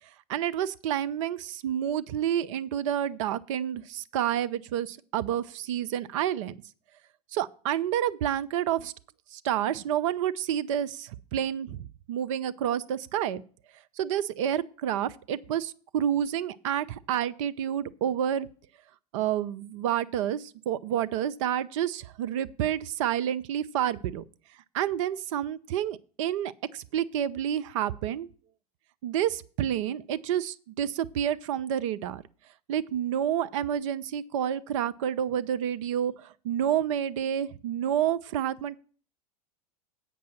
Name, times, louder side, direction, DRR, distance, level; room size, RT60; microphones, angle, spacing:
voice 1, 0.3-6.5 7.3-8.9 9.3-13.4 14.0-18.5 19.1-24.2 24.7-28.3 29.0-32.2 32.7-38.8, right 10 dB, 55° right, 0.5 m, -29 dB
8.5 x 5.4 x 7.3 m
figure-of-eight pair, 85°, 19 cm